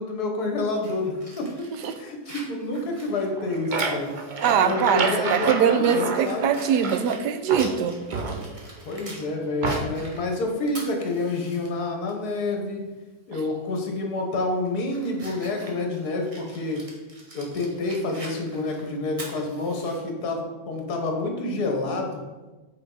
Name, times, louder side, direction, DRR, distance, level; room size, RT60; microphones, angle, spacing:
voice 1, 0.0-1.5 2.0-4.1 4.5-6.5 8.8-12.9 13.3-16.8 17.3-22.2, left 2 dB, 70° left, 2 dB, 1.7 m, -28 dB
Fire, 0.8-4.7 5.1-5.2 5.7-9.3 9.6-11.7 12.1-12.2 13.7-13.9 14.4-20.0, right 1 dB, 25° right, 1.2 m, -44 dB
sound 1, 3.2-7.2 7.5-8.8 9.6-10.1, right 4 dB, 55° right, 0.5 m, -29 dB
voice 2, 4.4-8.0, right 8 dB, 85° right, 10 dB, 1.2 m, -22 dB
8.5 x 4.9 x 3.9 m, 1.2 s
omnidirectional pair, 1.8 m